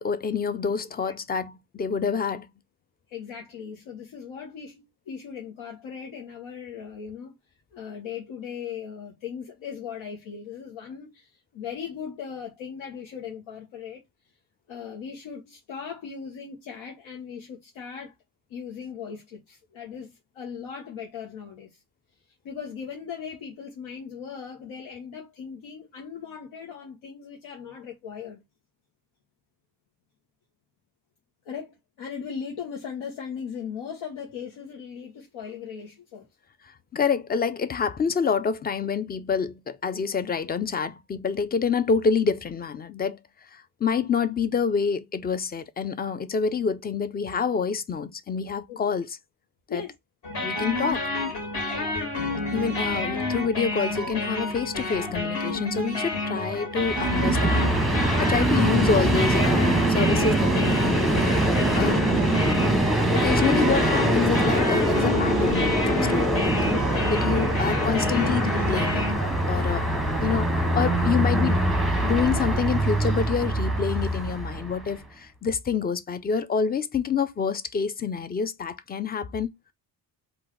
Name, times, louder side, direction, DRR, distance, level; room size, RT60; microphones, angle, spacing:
voice 1, 0.0-2.5 36.7-43.2 43.5-49.2 49.7-49.8 50.4-51.1 52.5-62.0 63.1-69.9 70.2-71.6 72.0-79.5, left 6 dB, 25° left, 0.3 m, -27 dB
voice 2, 3.1-7.3 7.7-14.0 14.7-18.1 18.5-21.7 22.4-28.4 31.4-36.3 48.7-48.8 49.7-49.9 51.7-51.9 60.1-60.4 67.3-67.5 70.6-70.9, left 7 dB, 85° left, 1.2 m, -38 dB
sound 1, 50.2-69.2, left 2 dB, 55° left, 2.2 m, -29 dB
Train, 56.7-74.9, right 1 dB, ahead, 0.8 m, -23 dB
3.9 x 2.5 x 4.6 m
cardioid pair, 135°, 45 cm